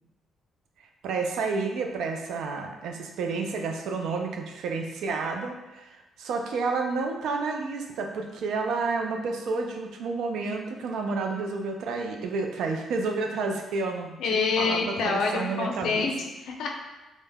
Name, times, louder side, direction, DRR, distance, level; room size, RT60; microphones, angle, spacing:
voice 1, 1.0-16.1, right 4 dB, 80° right, 3 dB, 0.3 m, -30 dB
voice 2, 14.2-16.7, left 4 dB, 75° left, 2 dB, 0.4 m, -27 dB
2.2 x 2.0 x 3.3 m, 1.1 s
cardioid pair, 90°, 0 cm